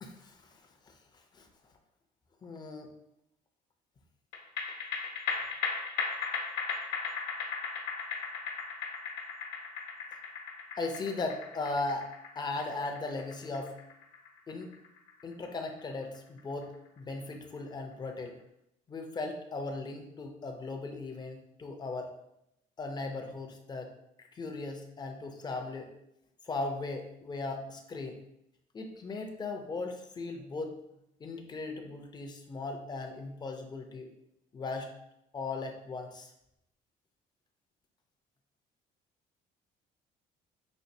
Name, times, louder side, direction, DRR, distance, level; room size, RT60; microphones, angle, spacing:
voice 1, 0.0-0.4 0.9-1.0 1.3-1.5 2.4-2.9 10.8-12.1 12.4-13.7 14.5-14.7 15.2-18.3 18.9-22.1 22.8-23.9 24.3-25.9 26.5-28.2 28.7-30.8 31.2-34.1 34.5-34.9 35.3-36.3, left 3 dB, 25° left, 4 dB, 0.6 m, -37 dB
sound 1, 4.3-17.0 17.3-17.4, left 5 dB, 70° left, 0.9 m, -37 dB
5.2 x 2.6 x 2.6 m, 0.79 s
cardioid pair, 110°, 17 cm